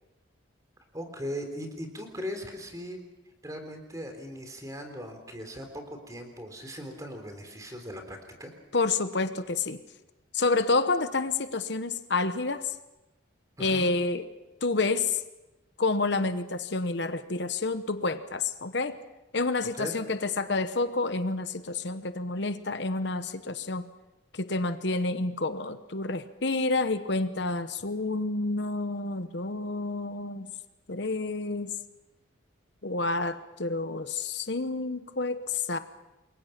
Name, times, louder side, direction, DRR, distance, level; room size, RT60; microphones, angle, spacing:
voice 1, 0.9-3.0 3.4-8.5 13.6-13.9 19.7-19.9, equal, 15° right, 5 dB, 3.7 m, -39 dB
voice 2, 8.7-9.8 10.3-12.7 13.6-14.2 14.6-15.2 15.8-19.0 19.3-23.8 24.3-30.5 30.9-31.7 32.8-35.8, left 3 dB, 60° left, 10 dB, 1.0 m, -29 dB
28.5 x 22.5 x 5.9 m, 1.0 s
head